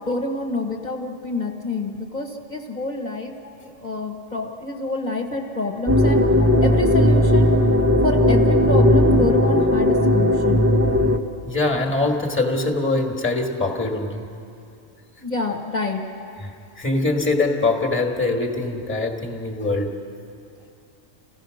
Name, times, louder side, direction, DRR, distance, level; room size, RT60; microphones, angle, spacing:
voice 1, 0.1-3.3 3.6-6.2 6.6-7.6 8.0-10.7 15.2-16.0, left 3 dB, 35° left, -3 dB, 1.4 m, -27 dB
sound 1, 5.9-11.2, left 1 dB, 15° right, 0.9 m, -17 dB
voice 2, 11.5-14.3 16.4-19.9, left 2 dB, 10° left, 1 dB, 1.7 m, -23 dB
28.5 x 16.0 x 6.4 m, 2.5 s
omnidirectional pair, 1.3 m